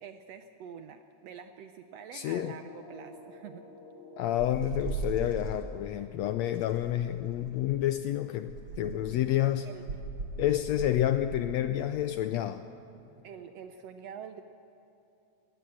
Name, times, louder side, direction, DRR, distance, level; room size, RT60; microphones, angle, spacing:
voice 1, 0.0-3.6 9.6-9.8 10.9-11.0 13.2-14.4, right 8 dB, 75° right, 8 dB, 1.6 m, -46 dB
voice 2, 2.1-2.6 4.2-9.7 10.4-12.6, left 12 dB, 80° left, 10 dB, 1.6 m, -29 dB
sound 1, 2.6-8.2, left 2 dB, 60° left, 3.3 m, -53 dB
sound 2, 4.4-5.6 6.5-7.8 8.4-9.1 9.9-11.5, right 4 dB, 50° right, 3.3 m, -38 dB
21.0 x 18.5 x 7.6 m, 3.0 s
omnidirectional pair, 3.6 m